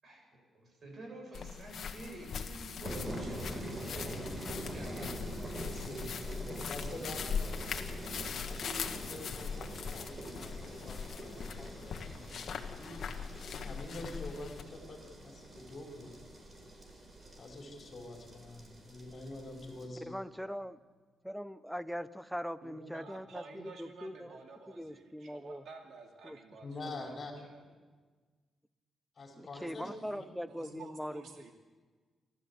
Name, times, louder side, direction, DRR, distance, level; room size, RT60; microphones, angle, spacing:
voice 1, 0.0-4.2 4.7-5.4, right 1 dB, 45° right, 1 dB, 7.5 m, -49 dB
sound 1, 1.3-14.6, left 6 dB, 60° left, 1.6 m, -41 dB
sound 2, 2.8-19.9, right 1 dB, 30° right, 3.9 m, -44 dB
voice 2, 5.7-6.0 6.4-7.9 8.5-13.0 13.6-16.1 17.4-20.1 26.6-27.3 29.2-29.9, left 2 dB, 40° left, 1 dB, 4.5 m, -46 dB
voice 3, 20.1-20.8 21.2-24.4 24.7-25.6 26.2-26.4 26.7-27.1 29.4-31.5, equal, ahead, 15 dB, 0.6 m, -41 dB
voice 4, 22.6-27.6 29.5-31.5, right 4 dB, 70° right, 2 dB, 2.5 m, -52 dB
28.5 x 13.0 x 8.2 m, 1.5 s
wide cardioid pair, 140°, 0 cm